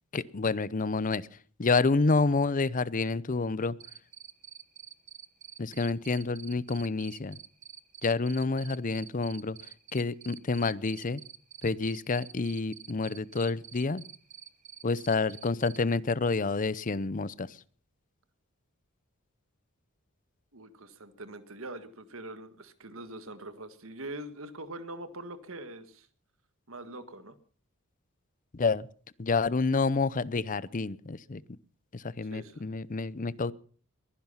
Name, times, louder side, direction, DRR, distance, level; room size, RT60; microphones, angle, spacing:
voice 1, 0.1-3.8 5.6-7.4 8.0-11.2 11.6-14.0 14.8-17.6 28.5-28.9 29.2-31.4 31.9-33.5, left 3 dB, 40° left, 19 dB, 0.6 m, -29 dB
Cricket, 3.8-15.8, right 9 dB, 35° right, 1.0 m, -47 dB
voice 2, 20.5-26.1 26.7-27.3 32.3-32.6, right 1 dB, 65° right, 11 dB, 1.7 m, -43 dB
21.5 x 10.5 x 5.6 m, 0.44 s
head